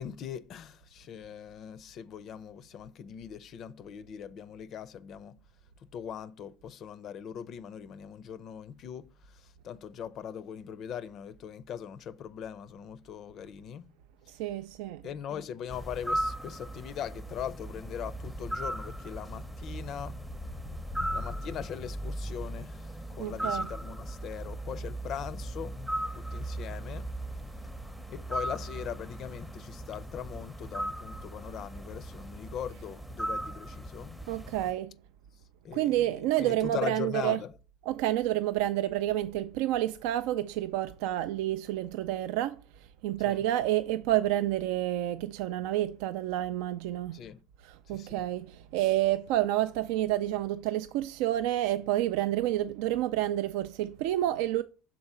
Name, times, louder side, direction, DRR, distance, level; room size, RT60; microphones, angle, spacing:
voice 1, 0.0-5.4 5.9-13.9 15.0-20.2 21.1-25.8 26.1-27.1 28.1-34.2 35.6-37.5 43.3-43.4 47.1-47.4 47.9-48.2, left 8 dB, 50° left, 0.4 m, -40 dB
voice 2, 14.3-15.0 23.2-23.7 34.3-34.9 35.7-37.4 37.8-47.2 47.6-54.6, right 14 dB, 85° right, 0.3 m, -29 dB
sound 1, 15.7-34.7, right 1 dB, 5° right, 0.6 m, -37 dB
6.0 x 3.9 x 5.4 m
cardioid pair, 115°, 0 cm